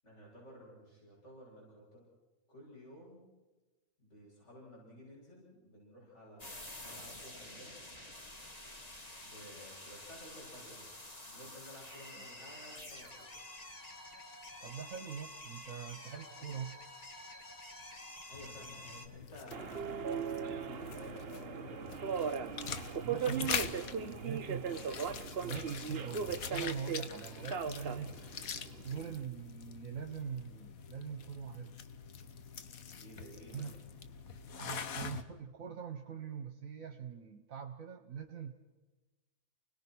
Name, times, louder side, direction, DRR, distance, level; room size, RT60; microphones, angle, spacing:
voice 1, 0.0-2.0 2.5-3.3 4.0-7.8 9.2-11.0 11.3-13.3 18.3-20.0 20.3-22.0 33.0-33.6, equal, 55° left, -5 dB, 8.3 m, -53 dB
sound 1, 6.4-19.1, left 1 dB, 30° left, 2.0 m, -49 dB
voice 2, 14.6-16.8 23.0-24.7 25.4-28.2 28.8-31.8 33.5-33.7 34.6-38.5, right 7 dB, 70° right, 6 dB, 1.6 m, -43 dB
sound 2, 18.3-35.2, left 6 dB, 75° left, 1.6 m, -44 dB
Subway metro underground, 19.5-29.2, right 7 dB, 50° right, 1.0 m, -38 dB
29.0 x 19.5 x 6.3 m, 1.2 s
omnidirectional pair, 1.5 m